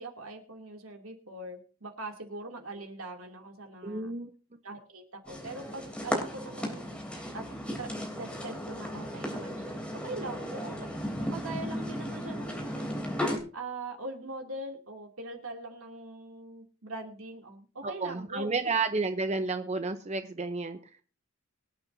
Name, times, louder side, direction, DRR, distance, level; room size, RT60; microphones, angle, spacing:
voice 1, 0.0-4.1 4.6-7.0 7.3-7.4 7.8-7.9 8.2-13.0 13.5-18.6, right 2 dB, 75° right, 2 dB, 2.8 m, -42 dB
voice 2, 3.8-4.3 17.8-20.8, right 3 dB, 30° right, 8 dB, 0.7 m, -31 dB
sound 1, 5.3-13.4, equal, 5° left, 3.2 m, -35 dB
24.5 x 8.7 x 2.7 m, 0.37 s
head